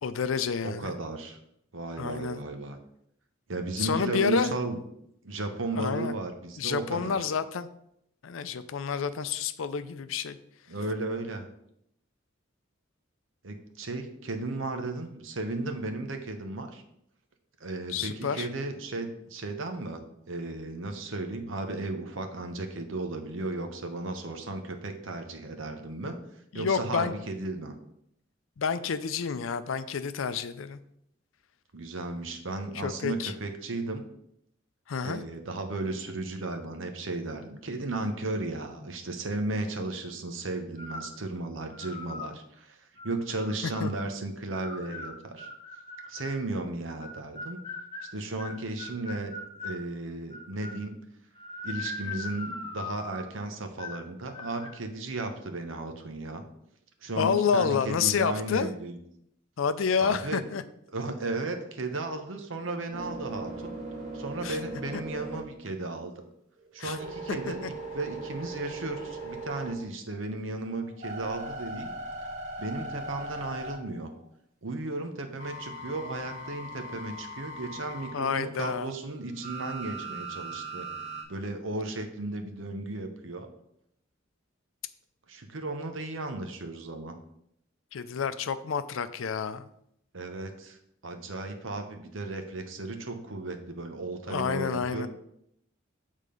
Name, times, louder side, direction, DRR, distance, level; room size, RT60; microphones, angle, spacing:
voice 1, 0.0-0.9 2.0-2.4 3.8-4.5 5.7-6.2 6.6-7.7 8.2-10.4 17.9-18.5 26.5-27.1 28.6-30.8 32.7-33.3 34.9-35.2 43.8-43.9 57.2-58.7 59.6-60.6 64.4-64.6 66.8-67.0 78.1-78.9 87.9-89.7 94.3-95.1, left 6 dB, 80° left, 13 dB, 0.5 m, -29 dB
voice 2, 0.6-1.4 1.7-2.8 3.5-4.8 5.2-7.2 10.7-11.4 13.4-16.8 17.6-20.0 20.3-26.2 26.5-27.7 31.7-34.0 35.0-42.8 43.0-45.5 46.1-47.6 48.1-49.3 49.6-51.0 51.6-56.4 57.0-59.0 60.0-60.4 60.9-63.7 64.1-66.1 66.7-71.9 72.6-74.1 74.6-80.9 81.3-83.5 85.3-87.1 90.1-90.8 91.0-95.1, right 2 dB, 75° right, 6 dB, 0.9 m, -35 dB
sound 1, 40.8-41.2 41.7-42.3 43.0-44.0 44.5-46.4 47.0-49.8 50.3-50.9 51.4-53.3 53.8-54.1 54.3-54.8, left 3 dB, 25° left, 0.7 m, -40 dB
sound 2, 62.6-66.1 66.6-70.1 70.6-74.3 75.4-78.2 79.4-81.2, right 2 dB, 40° right, 1.7 m, -39 dB
6.7 x 3.7 x 5.2 m, 0.75 s
head